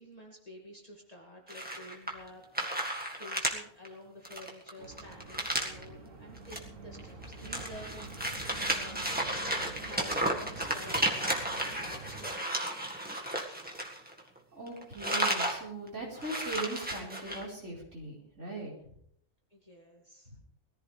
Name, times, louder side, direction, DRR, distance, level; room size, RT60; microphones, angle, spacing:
voice 1, 0.0-2.9 3.2-9.2 9.8-13.7 19.5-20.3, equal, 25° left, -1 dB, 2.5 m, -50 dB
sound 1, 1.5-2.3 2.5-3.5 3.8-3.9 4.3-5.8 6.4-6.6 6.9-14.4 14.7-15.6 15.9-16.0 16.2-17.4, right 1 dB, 5° right, 1.7 m, -33 dB
sound 2, 4.8-12.3, right 3 dB, 90° right, 2.1 m, -47 dB
voice 2, 14.5-18.7 20.3-20.4, right 2 dB, 55° right, -3 dB, 4.9 m, -40 dB
20.5 x 14.5 x 3.4 m, 0.66 s
omnidirectional pair, 1.5 m